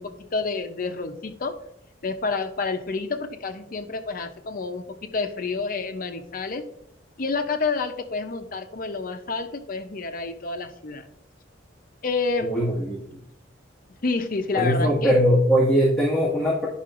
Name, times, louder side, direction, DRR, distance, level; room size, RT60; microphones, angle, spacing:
voice 1, 0.0-1.6 2.0-6.6 7.2-11.1 12.0-12.5 14.0-15.2, left 4 dB, 50° left, 8 dB, 0.6 m, -29 dB
voice 2, 12.5-13.0 14.5-16.7, equal, 5° left, -8 dB, 1.6 m, -20 dB
10.0 x 5.6 x 2.5 m, 0.76 s
head